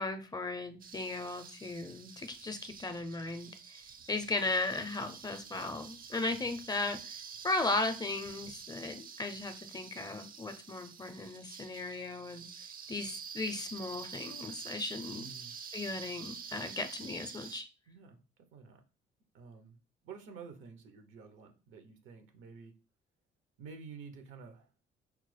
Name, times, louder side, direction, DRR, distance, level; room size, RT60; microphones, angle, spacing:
voice 1, 0.0-3.8 4.1-7.2 7.4-12.5 12.9-15.3 15.7-17.7, left 2 dB, 20° left, 9 dB, 0.5 m, -36 dB
sound 1, 0.8-17.6, right 6 dB, 45° right, 0.5 m, -48 dB
voice 2, 15.2-15.5 17.9-18.8 19.3-19.8 20.0-22.7 23.6-24.7, right 5 dB, 90° right, 6 dB, 0.9 m, -50 dB
4.7 x 2.0 x 3.2 m, 0.32 s
cardioid pair, 90°, 20 cm